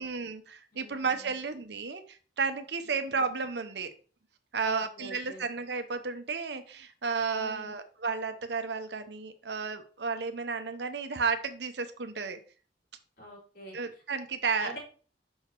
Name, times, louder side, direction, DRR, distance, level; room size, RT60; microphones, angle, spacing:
voice 1, 0.0-3.9 4.5-12.4 13.7-14.8, right 5 dB, 65° right, 9 dB, 0.8 m, -33 dB
voice 2, 0.7-1.4 2.8-3.2 4.6-5.4 7.3-7.8 13.2-13.8 14.6-14.8, equal, 55° left, -4 dB, 3.7 m, -46 dB
5.6 x 4.9 x 4.5 m, 0.40 s
head